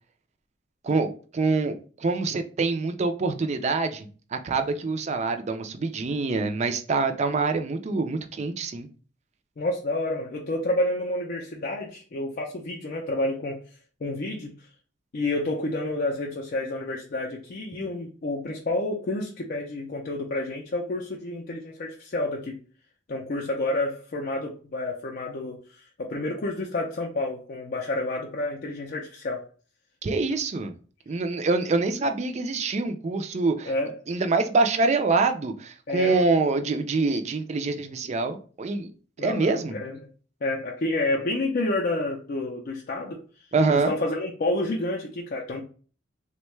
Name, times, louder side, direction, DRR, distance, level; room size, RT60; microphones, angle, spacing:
voice 1, 0.8-8.9 30.0-30.7 31.1-33.7 34.1-38.9 39.2-39.8 43.5-43.9, right 3 dB, 35° right, 0.4 m, -25 dB
voice 2, 9.6-13.6 14.0-14.7 15.1-22.6 23.1-29.5 33.6-34.0 35.9-36.2 39.2-40.0 40.4-43.2 43.7-45.6, left 2 dB, 45° left, 0.4 m, -29 dB
3.5 x 2.2 x 3.1 m
head